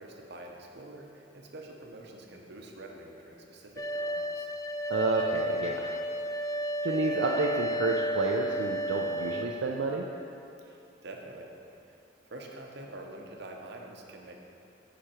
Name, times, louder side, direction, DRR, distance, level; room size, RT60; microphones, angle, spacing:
voice 1, 0.0-4.5 10.6-12.0 12.3-14.4, right 1 dB, 60° right, 1 dB, 0.9 m, -46 dB
sound 1, 3.8-9.4, equal, 20° left, 0.3 m, -32 dB
voice 2, 4.9-5.9 6.8-10.1, right 3 dB, 75° right, -1 dB, 0.5 m, -30 dB
10.5 x 5.0 x 4.4 m, 2.7 s
head